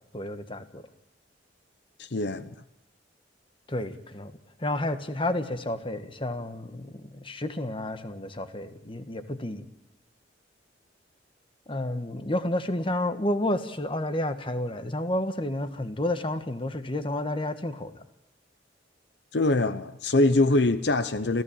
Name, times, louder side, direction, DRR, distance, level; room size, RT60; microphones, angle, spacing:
voice 1, 0.1-0.8 3.7-4.3 4.6-9.6 11.7-18.0, left 1 dB, 30° left, 1.5 m, -30 dB
voice 2, 2.0-2.5 19.3-21.4, left 2 dB, 65° left, 0.9 m, -23 dB
30.0 x 15.5 x 8.8 m
head